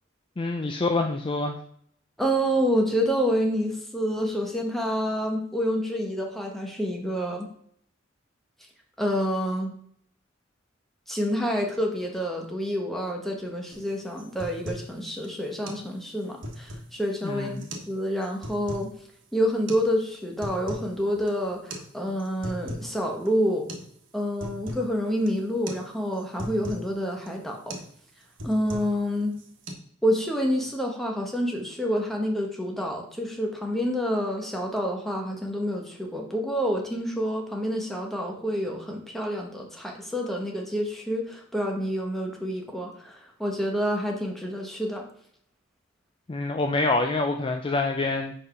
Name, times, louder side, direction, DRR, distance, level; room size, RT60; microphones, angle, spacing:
voice 1, 0.4-1.6 17.2-17.7 46.3-48.3, left 3 dB, 25° left, 4 dB, 0.4 m, -26 dB
voice 2, 2.2-7.5 9.0-9.7 11.1-18.9 19.3-23.7 24.1-27.7 28.4-29.3 30.0-45.0, equal, ahead, 0 dB, 1.1 m, -28 dB
sound 1, 13.7-13.9 14.2-14.9 15.2-15.3 15.7-15.9 16.2-17.0 17.6-17.9 18.2-18.9 19.7-19.8 20.2-20.9 21.2-21.3 21.7-21.9 22.2-22.9 23.3-23.4 23.7-23.9 24.2-24.9 25.3-25.4 25.7-25.9 26.1-26.9 27.3-27.4 27.7-27.9 28.2-29.0 29.3-29.7, equal, 70° right, 1.3 m, -37 dB
4.9 x 4.7 x 5.6 m, 0.63 s
head